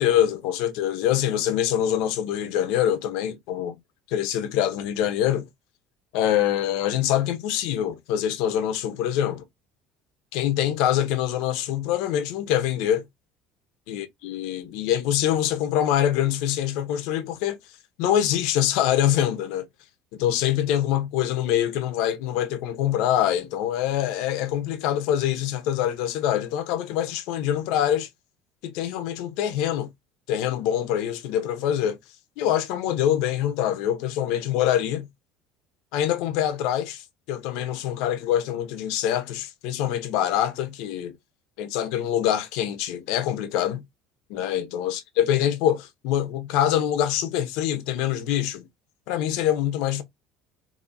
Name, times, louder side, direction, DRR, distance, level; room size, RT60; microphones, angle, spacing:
voice 1, 0.0-3.8 4.1-5.4 6.1-9.4 10.3-13.0 13.9-17.6 18.0-19.7 20.1-28.1 28.6-29.9 30.3-32.0 32.4-35.1 35.9-41.1 41.6-43.8 44.3-48.7 49.1-50.0, left 11 dB, 75° left, 0.8 m, -24 dB
4.1 x 2.7 x 2.5 m
cardioid pair, 130°, 0 cm